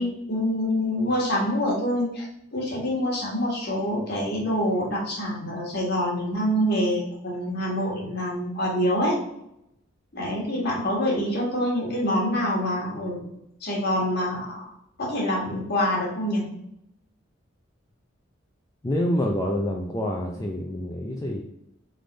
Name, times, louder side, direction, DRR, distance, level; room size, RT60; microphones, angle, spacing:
voice 1, 0.0-9.2 10.1-13.3 13.6-14.6 15.0-16.5, equal, 55° left, -3 dB, 1.5 m, -26 dB
voice 2, 18.8-21.4, left 1 dB, 15° left, -1 dB, 0.4 m, -27 dB
3.7 x 3.3 x 3.8 m, 0.79 s
head